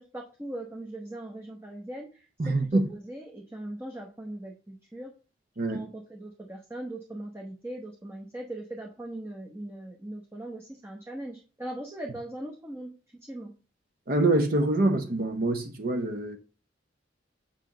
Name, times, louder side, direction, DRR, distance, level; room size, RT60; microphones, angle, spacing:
voice 1, 0.0-5.1 5.7-12.9 13.2-13.5, right 1 dB, 15° right, 0.9 m, -40 dB
voice 2, 2.4-2.9 5.6-5.8 14.1-16.4, right 2 dB, 50° right, 0.7 m, -25 dB
6.5 x 4.9 x 3.9 m
head